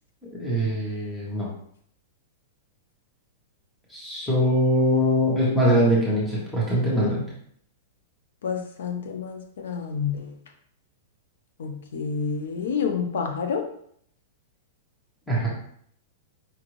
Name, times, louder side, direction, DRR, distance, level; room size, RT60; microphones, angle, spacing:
voice 1, 0.3-1.5 3.9-7.3 15.3-15.5, equal, ahead, -7 dB, 0.9 m, -22 dB
voice 2, 8.4-10.3 11.6-13.6, left 6 dB, 80° left, 5 dB, 0.6 m, -29 dB
4.9 x 2.5 x 3.0 m, 0.65 s
supercardioid pair, 175°, 0 cm